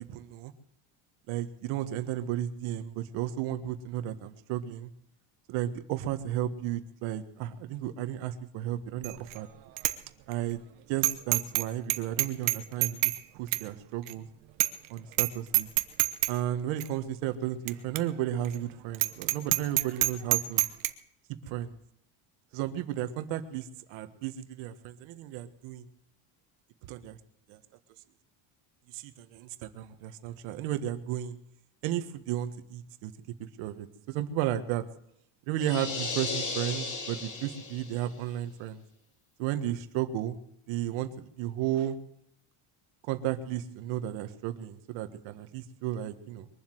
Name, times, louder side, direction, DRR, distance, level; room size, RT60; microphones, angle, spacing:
voice 1, 0.1-0.5 1.3-4.9 5.5-9.5 10.3-10.6 10.9-14.3 14.9-15.7 16.3-20.6 21.5-21.8 22.5-25.8 26.8-27.2 27.5-27.6 28.9-31.4 31.8-33.1 33.4-34.8 35.5-38.8 39.4-40.4 40.7-42.0 43.1-46.5, right 12 dB, 85° right, 10 dB, 1.6 m, -33 dB
Bicycle bell, 9.0-9.4 9.8-9.9 10.3-10.4 11.0-11.6 11.9-13.2 13.5-13.6 14.1-14.2 14.6-14.9 15.1-15.3 15.5-16.3 16.8-16.9 17.7-17.8 18.0-18.1 18.4-18.6 18.9-20.9, right 19 dB, 65° right, 1.1 m, -26 dB
sound 1, 35.6-38.1, left 4 dB, 40° left, 2.7 m, -35 dB
22.5 x 7.6 x 7.8 m, 0.75 s
cardioid pair, 175°, 47 cm